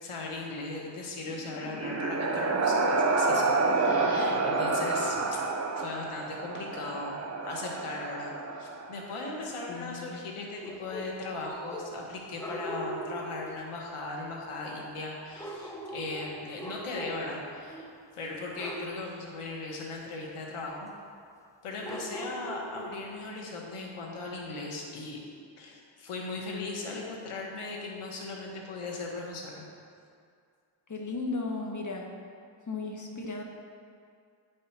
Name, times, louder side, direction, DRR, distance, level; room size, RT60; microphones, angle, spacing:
voice 1, 0.0-5.4 5.7-17.9 18.1-20.9 21.6-25.2 25.6-29.7, left 3 dB, 85° left, -1 dB, 1.6 m, -38 dB
sound 1, 1.3-9.2, right 3 dB, 30° right, 0.7 m, -29 dB
voice 2, 9.7-10.2 30.9-32.1 32.7-33.4, left 3 dB, 35° left, 1 dB, 1.4 m, -35 dB
sound 2, 10.6-12.1 12.4-13.6 15.4-17.4 17.7-18.0 18.6-19.0 21.8-23.1, equal, 5° left, 1.0 m, -40 dB
9.0 x 5.3 x 5.8 m, 2.3 s
cardioid pair, 75°, 50 cm